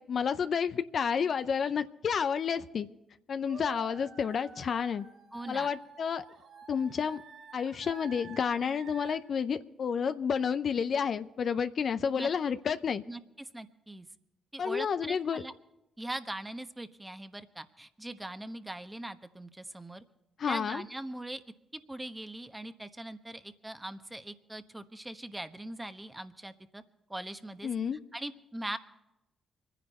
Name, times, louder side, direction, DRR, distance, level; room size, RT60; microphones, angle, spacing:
voice 1, 0.0-2.9 3.3-5.0 5.5-6.3 6.7-7.2 7.5-13.0 14.6-15.4 20.4-20.8 27.6-28.0, left 6 dB, 60° left, 11 dB, 0.6 m, -30 dB
sound 1, 3.4-9.2, right 6 dB, 65° right, 5.4 m, -49 dB
voice 2, 5.3-5.7 12.2-12.3 13.1-14.1 14.5-15.5 16.0-20.0 20.5-21.4 21.7-26.8 27.1-27.7 28.1-28.8, right 1 dB, 15° right, 10 dB, 1.1 m, -41 dB
25.5 x 10.0 x 4.3 m, 0.93 s
hypercardioid pair, 45°, 0 cm